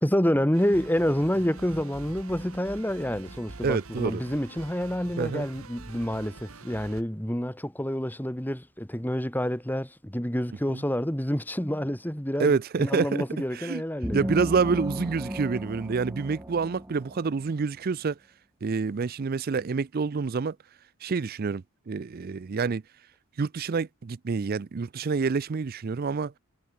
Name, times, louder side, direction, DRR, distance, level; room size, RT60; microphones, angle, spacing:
voice 1, 0.0-14.3, equal, 10° left, 1.8 m, -28 dB
sound 1, 0.5-7.0, right 3 dB, 70° right, 1.5 m, -45 dB
voice 2, 3.6-4.2 5.2-5.5 10.7-10.8 12.4-13.2 13.5-13.8 14.1-18.2 18.6-20.6 21.0-22.8 23.4-26.3, right 5 dB, 40° right, 0.4 m, -27 dB
sound 2, 14.0-17.6, right 1 dB, 10° right, 1.0 m, -35 dB
head